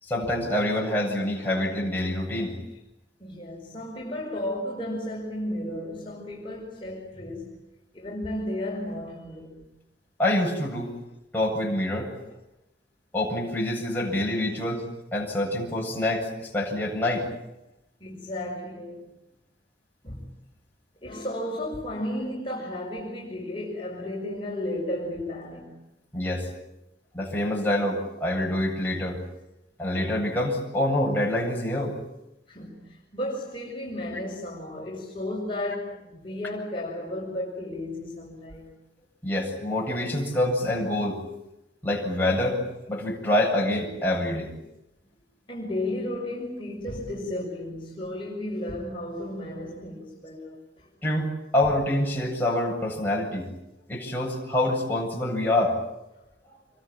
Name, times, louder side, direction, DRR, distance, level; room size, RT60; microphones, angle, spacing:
voice 1, 0.0-2.5 10.2-10.9 11.3-12.1 13.1-14.9 15.1-17.3 26.1-26.5 27.1-29.2 29.8-32.0 39.2-41.2 41.8-42.6 42.9-44.5 51.0-53.5 53.9-55.8, left 1 dB, 10° left, 7.9 m, -26 dB
voice 2, 3.2-7.6 7.9-9.7 14.6-14.7 18.0-19.1 20.0-20.3 21.0-25.7 32.5-38.7 45.5-50.9 56.2-56.3, left 1 dB, 30° left, 6.0 m, -33 dB
27.5 x 23.5 x 9.1 m
head